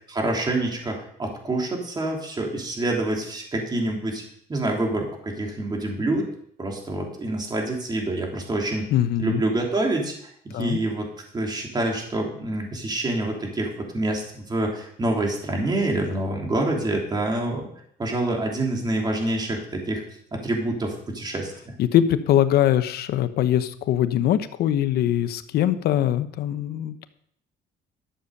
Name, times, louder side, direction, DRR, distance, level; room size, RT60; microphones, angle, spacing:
voice 1, 0.1-4.2 4.5-6.3 6.6-8.9 9.2-10.1 10.4-11.1 11.3-17.7 18.0-20.0 20.3-21.7, right 2 dB, 25° right, 0 dB, 3.3 m, -26 dB
voice 2, 8.9-9.4 10.5-10.8 21.8-27.0, left 11 dB, 70° left, 11 dB, 1.0 m, -22 dB
12.5 x 7.0 x 6.6 m, 0.66 s
cardioid pair, 110°, 17 cm